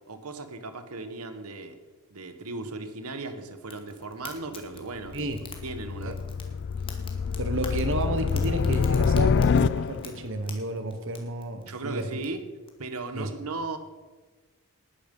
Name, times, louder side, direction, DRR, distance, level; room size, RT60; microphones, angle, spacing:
voice 1, 0.1-1.8 2.1-5.2 5.6-6.4 11.7-12.4 12.8-13.8, right 3 dB, 80° right, 8 dB, 1.4 m, -37 dB
Fire, 3.7-12.7, left 5 dB, 25° left, 2.2 m, -48 dB
sound 1, 5.0-10.3, left 5 dB, 50° left, 0.3 m, -26 dB
voice 2, 7.4-12.1 13.1-13.3, right 1 dB, 60° right, 7 dB, 1.4 m, -31 dB
19.0 x 10.5 x 5.5 m, 1.3 s
head